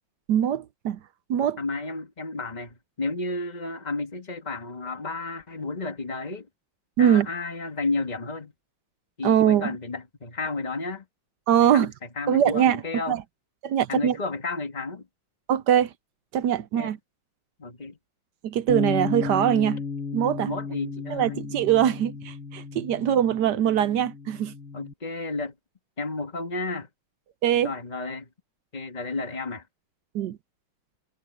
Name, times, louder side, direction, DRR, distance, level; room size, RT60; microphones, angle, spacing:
voice 1, 0.3-1.0 1.3-1.6 7.0-7.3 9.2-9.8 11.5-11.9 12.3-12.8 13.1-13.2 13.6-14.2 15.5-15.9 16.3-17.0 18.4-19.8 20.1-20.5 21.1-24.5 27.4-27.7 30.1-30.4, right 10 dB, 65° right, 1.1 m, -22 dB
voice 2, 1.6-6.5 7.0-8.5 9.2-11.1 11.6-13.2 13.9-15.1 16.8-16.9 17.6-18.0 20.4-21.4 24.7-25.5 26.0-26.9 27.5-28.3 28.7-29.6, left 3 dB, 20° left, 2.1 m, -32 dB
Bass guitar, 18.7-24.9, left 5 dB, 40° left, 2.2 m, -34 dB
omnidirectional pair, 2.2 m